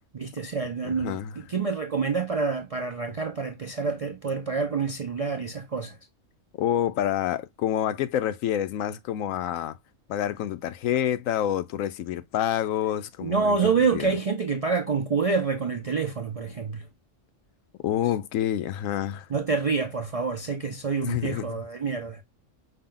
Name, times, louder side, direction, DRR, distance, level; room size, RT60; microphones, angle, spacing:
voice 1, 0.1-1.2 1.5-6.0 13.2-16.9 19.3-22.2, right 5 dB, 60° right, 0.3 m, -27 dB
voice 2, 0.8-1.3 6.6-9.8 10.1-13.6 13.9-14.1 17.8-19.3 21.0-21.6, left 11 dB, 85° left, 1.0 m, -28 dB
5.6 x 2.2 x 3.7 m
omnidirectional pair, 1.3 m